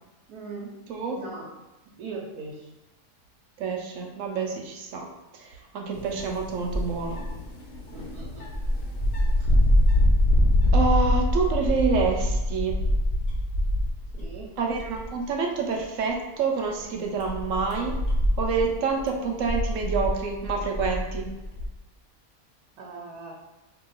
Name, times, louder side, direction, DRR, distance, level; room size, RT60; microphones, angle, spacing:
voice 1, 0.3-0.8 1.1-1.5 2.0-2.7 4.9-5.1 7.9-8.5 14.1-14.5 22.8-23.3, right 3 dB, 90° right, -3 dB, 1.2 m, -39 dB
voice 2, 0.9-1.2 3.6-5.1 5.3-7.2 10.7-12.8 14.6-18.0 18.4-21.3, right 4 dB, 70° right, 1 dB, 0.8 m, -27 dB
sound 1, 5.9-14.4 14.7-15.2 15.7-15.8 16.7-21.7, left 1 dB, 60° left, 1.1 m, -25 dB
2.8 x 2.8 x 3.8 m, 1.0 s
omnidirectional pair, 1.6 m